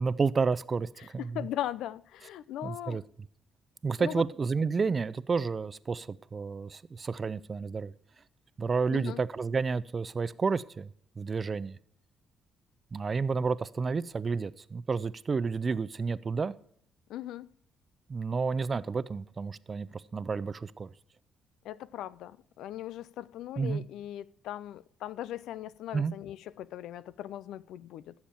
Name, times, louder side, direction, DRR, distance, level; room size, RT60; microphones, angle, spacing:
voice 1, 0.0-1.5 2.6-3.0 3.8-7.9 8.6-10.9 11.2-11.8 12.9-16.5 18.1-20.9 23.6-23.8 25.9-26.1, right 4 dB, 35° right, 0.5 m, -30 dB
voice 2, 1.3-3.0 4.0-4.2 8.9-9.2 17.1-17.5 21.6-28.1, left 12 dB, 85° left, 0.4 m, -39 dB
15.0 x 7.2 x 4.4 m
cardioid pair, 90°, 0 cm